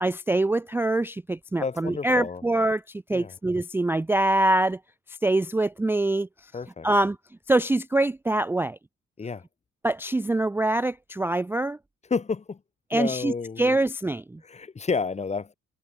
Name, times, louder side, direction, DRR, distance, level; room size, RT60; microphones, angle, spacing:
voice 1, 0.0-4.8 5.1-6.5 6.8-7.2 7.5-8.8 9.8-11.8 12.9-14.4, right 2 dB, 10° right, 0.4 m, -24 dB
voice 2, 1.6-2.4 3.1-3.3 6.5-6.9 9.2-9.4 12.1-12.6 12.9-13.8 14.4-15.5, left 4 dB, 20° left, 0.7 m, -30 dB
cardioid pair, 90°, 30 cm